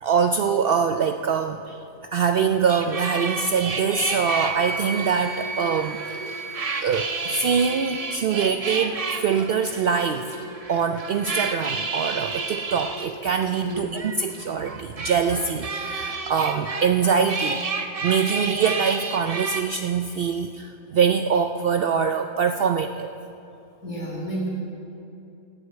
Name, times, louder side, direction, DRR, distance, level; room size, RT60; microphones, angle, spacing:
voice 1, 0.0-1.8 2.1-6.3 6.8-10.3 10.7-17.6 18.0-23.1, right 6 dB, 85° right, 7 dB, 0.5 m, -24 dB
sound 1, 2.7-19.6, right 4 dB, 40° right, 0.5 m, -31 dB
Wind instrument woodwind instrument, 4.0-8.1, right 3 dB, 30° left, 3.1 m, -34 dB
voice 2, 13.6-14.0 23.8-24.5, right 1 dB, 70° left, -4 dB, 3.8 m, -31 dB
12.5 x 8.1 x 7.9 m, 2.8 s
omnidirectional pair, 1.5 m